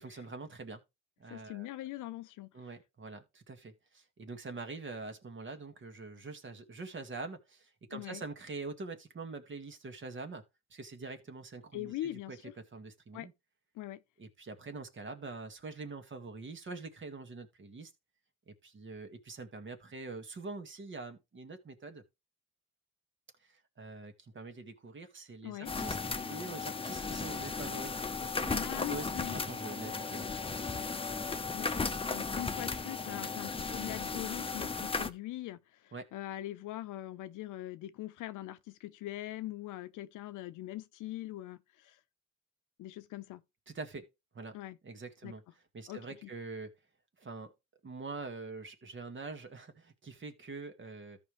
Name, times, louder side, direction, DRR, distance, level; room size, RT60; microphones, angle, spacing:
voice 1, 0.0-0.8 1.2-1.7 2.5-10.4 10.7-13.3 14.2-17.9 18.5-22.0 23.4-27.9 28.2-31.6 35.9-36.1 43.7-44.1 44.3-44.6 44.8-45.4 45.7-46.8 47.2-47.5 47.8-51.2, right 3 dB, 40° right, 1.8 m, -45 dB
voice 2, 1.3-2.5 7.9-8.2 11.7-12.5 13.1-13.3 13.8-14.0 25.4-25.7 28.5-29.4 31.5-42.0 42.8-43.4 44.5-44.8 45.2-45.3 45.9-46.3, left 15 dB, 85° left, 0.8 m, -42 dB
sound 1, 25.7-35.1, left 4 dB, 20° left, 0.9 m, -36 dB
13.5 x 5.4 x 3.2 m
cardioid pair, 90°, 30 cm